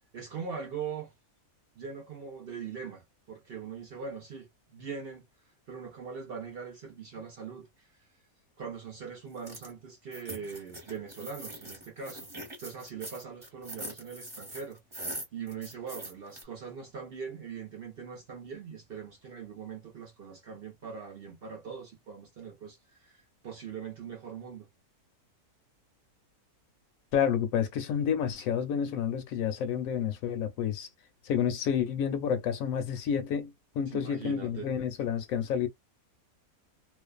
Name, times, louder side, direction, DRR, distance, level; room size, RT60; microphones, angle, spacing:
voice 1, 0.1-1.1 1.8-5.2 5.7-7.9 8.6-12.3 12.6-14.8 15.3-24.7 33.9-34.7, right 6 dB, 60° right, 0.6 m, -41 dB
sound 1, 9.4-9.7 10.1-16.4, right 1 dB, 20° right, 1.0 m, -42 dB
voice 2, 27.1-30.9 31.2-35.7, left 8 dB, 70° left, 1.0 m, -29 dB
2.5 x 2.3 x 2.3 m
omnidirectional pair, 1.6 m